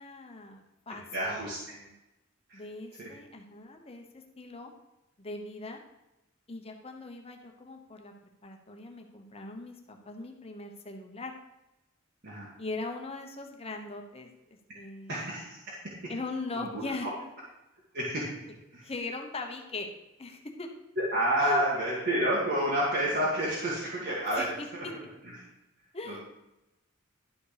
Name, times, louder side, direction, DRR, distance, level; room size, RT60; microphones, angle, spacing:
voice 1, 0.0-1.9 2.5-4.7 5.2-5.8 6.5-8.1 8.4-11.3 12.6-15.2 16.1-17.3 18.8-19.9 20.2-20.7 21.4-21.6 24.3-24.7 25.9-26.2, left 3 dB, 30° left, 3 dB, 1.0 m, -40 dB
voice 2, 1.1-1.6 2.5-2.6 3.0-3.1 12.2-12.5 15.1-15.6 16.6-16.8 17.9-18.3 18.7-18.9 21.0-24.8 26.1-26.2, right 1 dB, 55° right, -7 dB, 2.0 m, -29 dB
11.5 x 5.0 x 5.1 m, 0.95 s
head